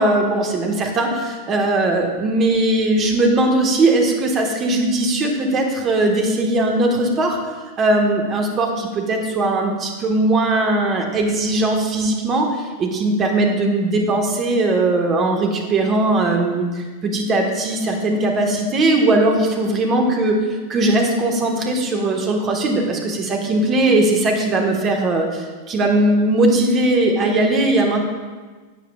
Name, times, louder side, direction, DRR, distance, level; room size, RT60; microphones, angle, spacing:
voice 1, 0.0-7.4 7.8-28.0, right 2 dB, 30° right, 2 dB, 1.5 m, -19 dB
12.5 x 8.3 x 2.4 m, 1.4 s
figure-of-eight pair, 90°, 0 cm